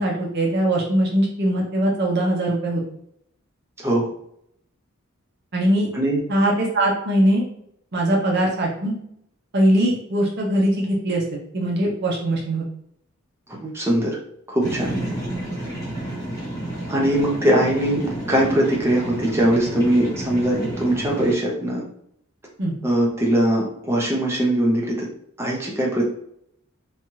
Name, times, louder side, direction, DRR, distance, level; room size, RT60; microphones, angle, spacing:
voice 1, 0.0-2.8 5.5-5.9 6.3-7.4 7.9-8.9 9.5-12.6 22.6-22.8, right 1 dB, 55° right, -2 dB, 0.6 m, -21 dB
voice 2, 13.5-14.2 14.5-14.9 16.9-21.8 22.8-25.1 25.4-26.1, right 1 dB, 10° right, -3 dB, 0.7 m, -21 dB
sound 1, 14.6-21.3, right 1 dB, 15° left, 1.1 m, -30 dB
2.8 x 2.3 x 3.0 m, 0.71 s
head